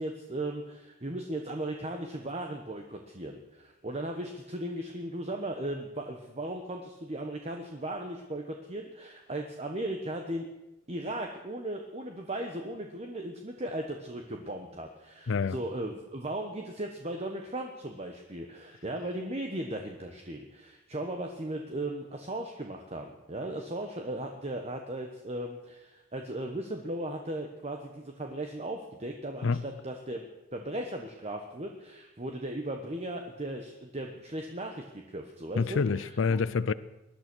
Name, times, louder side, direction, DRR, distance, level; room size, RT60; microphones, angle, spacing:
voice 1, 0.0-10.5 10.9-30.2 30.5-36.1, right 1 dB, 30° right, 1.2 m, -37 dB
voice 2, 15.3-15.6 29.4-29.6 35.6-36.7, left 4 dB, 70° left, 0.5 m, -27 dB
20.0 x 11.5 x 6.2 m
head